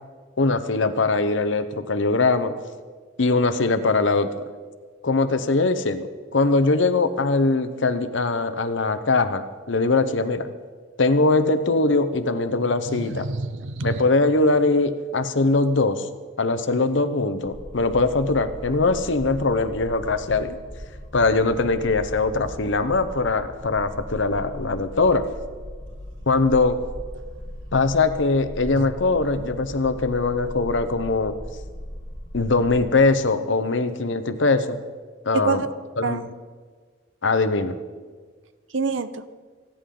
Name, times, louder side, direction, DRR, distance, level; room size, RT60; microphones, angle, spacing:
voice 1, 0.4-2.5 3.2-4.4 5.0-10.5 11.0-13.3 13.8-16.1 16.4-20.6 21.1-25.2 26.3-26.8 27.7-31.3 32.3-34.8 35.2-35.6 36.0-36.2 37.2-37.8, left 3 dB, 75° left, 11 dB, 0.9 m, -21 dB
voice 2, 12.9-14.0 28.8-28.9 35.3-35.7 36.0-36.3 38.7-39.2, right 4 dB, 80° right, 12 dB, 0.8 m, -27 dB
sound 1, 17.4-32.9, equal, 35° left, 4.0 m, -38 dB
28.5 x 10.0 x 3.9 m, 1.5 s
head